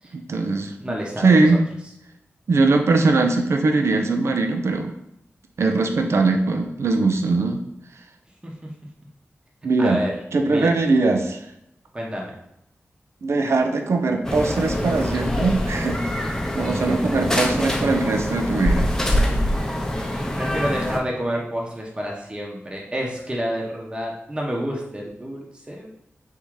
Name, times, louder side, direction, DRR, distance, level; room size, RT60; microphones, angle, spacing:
voice 1, 0.1-0.9 1.2-1.6 2.5-4.9 5.6-7.6 9.6-10.0 10.3-11.5 13.2-16.0 16.5-18.9, right 3 dB, 70° right, 4 dB, 0.4 m, -20 dB
voice 2, 0.8-1.6 8.4-8.7 9.8-10.1 10.4-10.8 11.9-12.4 20.4-25.9, equal, 20° right, -2 dB, 0.9 m, -29 dB
sound 1, 14.2-21.0, left 1 dB, 10° left, 0.6 m, -24 dB
3.6 x 2.7 x 4.6 m, 0.79 s
wide cardioid pair, 85°, 5 cm